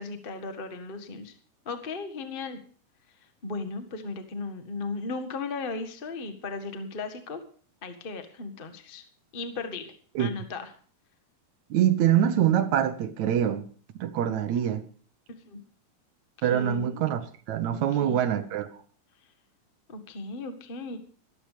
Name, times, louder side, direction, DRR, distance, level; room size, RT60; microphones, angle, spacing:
voice 1, 0.0-1.3 1.6-2.6 3.4-7.4 7.8-9.0 9.3-10.7 15.5-15.6 16.4-17.0 17.7-18.2 19.9-21.0, left 3 dB, 90° left, 0.4 m, -36 dB
voice 2, 11.7-13.6 14.0-14.8 16.4-18.7, right 10 dB, 70° right, 1.9 m, -25 dB
13.5 x 13.5 x 5.0 m
omnidirectional pair, 4.2 m